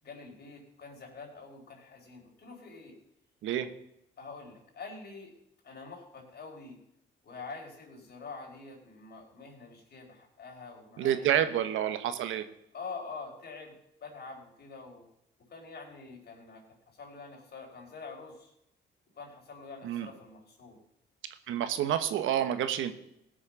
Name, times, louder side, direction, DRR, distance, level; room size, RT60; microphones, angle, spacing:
voice 1, 0.0-2.9 4.2-5.3 5.6-6.8 7.2-11.5 12.7-13.7 14.0-15.1 15.5-18.5 19.2-20.8, left 4 dB, 55° left, 0 dB, 4.7 m, -46 dB
voice 2, 11.0-12.4 19.8-20.1 21.5-22.9, right 10 dB, 85° right, 10 dB, 1.2 m, -28 dB
17.0 x 6.4 x 6.2 m, 0.78 s
cardioid pair, 90°, 20 cm